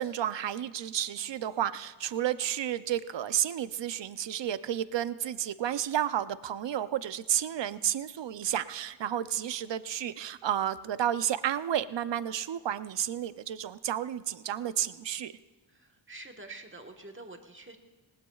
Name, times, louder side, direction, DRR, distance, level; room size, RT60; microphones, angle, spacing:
voice 1, 0.0-15.3, right 10 dB, 60° right, 14 dB, 0.6 m, -31 dB
voice 2, 15.7-17.8, right 2 dB, 25° right, 4 dB, 1.4 m, -47 dB
19.5 x 18.5 x 2.4 m, 1.3 s
wide cardioid pair, 70°, 49 cm